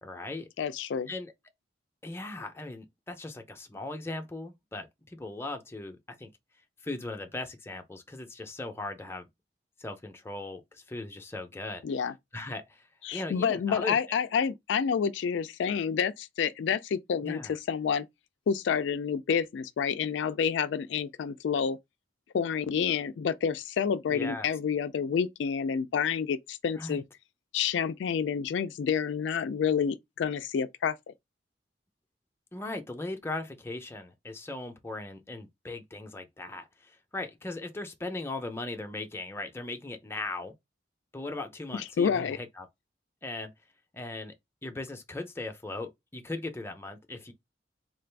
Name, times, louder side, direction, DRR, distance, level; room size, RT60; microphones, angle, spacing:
voice 1, 0.0-0.5 1.1-1.3 2.0-6.3 6.8-9.3 9.8-11.8 12.3-14.2 17.2-17.6 24.1-24.5 26.8-27.0 32.5-40.5 41.1-42.7 43.2-43.5 43.9-44.3 44.6-47.3, left 2 dB, 15° left, 0.6 m, -38 dB
voice 2, 0.6-1.1 11.8-12.1 13.0-17.4 17.7-18.1 18.5-21.8 22.3-27.0 27.5-31.1 41.7-42.4, left 7 dB, 75° left, 0.3 m, -29 dB
3.8 x 2.5 x 3.3 m
head